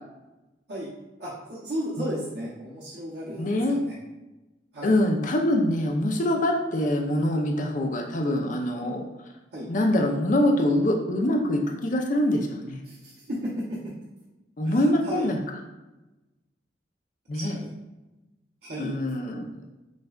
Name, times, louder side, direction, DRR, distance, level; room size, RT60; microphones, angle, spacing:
voice 1, 1.2-3.9 4.7-5.0 9.5-9.7 12.8-13.8 14.6-15.3 17.3-17.7 18.6-18.9, equal, 65° right, -8 dB, 0.9 m, -34 dB
voice 2, 3.4-3.8 4.8-9.0 9.7-12.8 14.6-15.4 17.3-17.6 18.8-19.5, left 1 dB, 45° left, 2 dB, 0.5 m, -24 dB
6.3 x 2.2 x 2.4 m, 1.0 s
head